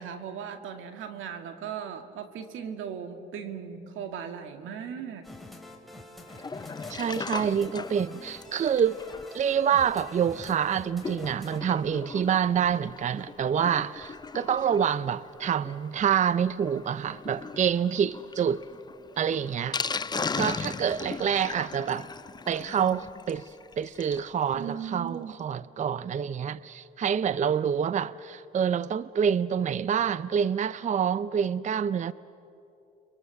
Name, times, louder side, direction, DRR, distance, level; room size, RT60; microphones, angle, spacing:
voice 1, 0.0-5.3 24.6-25.4, right 7 dB, 85° right, 2.0 m, -38 dB
sound 1, 5.2-11.6, left 1 dB, ahead, 3.1 m, -46 dB
Sink (filling or washing), 6.3-24.3 24.7-24.8 24.9-25.0 25.4-25.5, left 4 dB, 20° left, 0.5 m, -39 dB
voice 2, 6.9-9.0 9.3-18.6 19.2-19.8 20.4-22.1 22.5-32.1, right 8 dB, 40° right, 0.5 m, -27 dB
30.0 x 23.5 x 6.9 m
cardioid pair, 90°, 20 cm